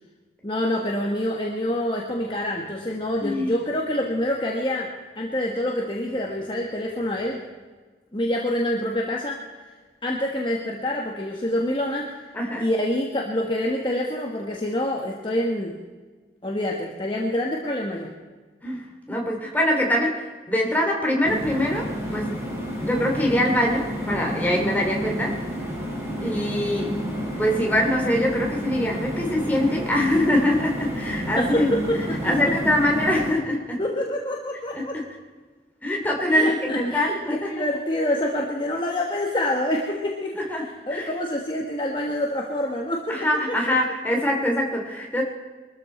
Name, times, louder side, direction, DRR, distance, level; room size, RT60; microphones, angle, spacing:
voice 1, 0.4-7.4 8.1-9.6 10.0-12.2 12.6-15.8 16.4-18.1 31.4-32.5 33.8-35.0 36.3-43.8, left 1 dB, 30° left, -1 dB, 1.4 m, -27 dB
voice 2, 3.2-3.5 12.3-12.7 18.6-22.4 22.8-25.4 26.2-27.0 27.4-31.7 32.2-33.8 34.7-35.0 35.8-37.5 40.5-40.6 40.9-41.1 43.1-45.2, left 1 dB, 10° left, -1 dB, 2.7 m, -23 dB
sound 1, 21.2-33.3, equal, 15° right, 3.8 m, -30 dB
23.0 x 13.5 x 4.4 m, 1.4 s
head